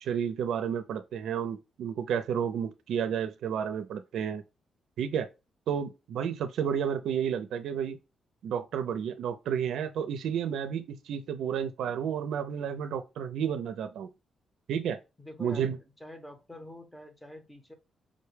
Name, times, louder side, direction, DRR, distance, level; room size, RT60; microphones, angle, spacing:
voice 1, 0.0-4.4 5.0-5.3 5.7-8.0 8.4-14.1 14.7-15.0 15.4-15.8, right 8 dB, 85° right, 0.4 m, -31 dB
voice 2, 15.2-17.7, left 1 dB, 5° left, 0.8 m, -46 dB
5.0 x 2.2 x 3.2 m
cardioid pair, 100°, 0 cm